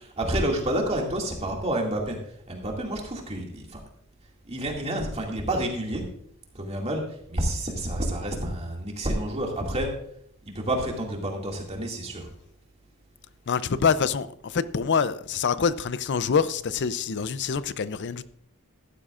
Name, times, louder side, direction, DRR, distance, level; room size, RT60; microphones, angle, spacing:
voice 1, 0.0-2.2 2.5-3.8 4.5-6.0 6.6-7.0 7.3-9.9 10.5-12.3, right 1 dB, 30° right, 2.2 m, -29 dB
voice 2, 13.5-18.3, left 6 dB, 55° left, 0.5 m, -25 dB
15.0 x 11.5 x 2.5 m
head